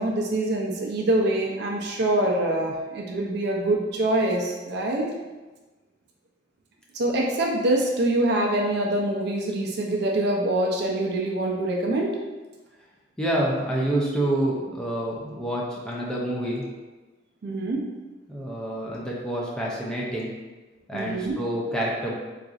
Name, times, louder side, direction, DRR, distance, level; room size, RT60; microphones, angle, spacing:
voice 1, 0.0-5.1 6.9-12.1 17.4-17.9 20.9-21.4, right 1 dB, 60° right, 0 dB, 0.4 m, -25 dB
voice 2, 13.2-16.7 18.3-20.3 20.9-22.2, right 1 dB, 5° left, -5 dB, 0.4 m, -27 dB
3.9 x 2.4 x 2.4 m, 1.2 s
head